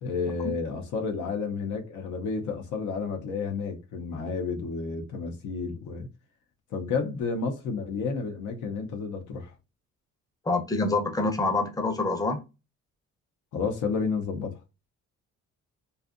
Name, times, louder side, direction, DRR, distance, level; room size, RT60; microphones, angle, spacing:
voice 1, 0.0-6.1 6.7-9.5 13.5-14.6, left 4 dB, 75° left, 0.6 m, -31 dB
voice 2, 10.4-12.4, left 3 dB, 10° left, 0.6 m, -26 dB
2.6 x 2.3 x 2.4 m
cardioid pair, 90°, 30 cm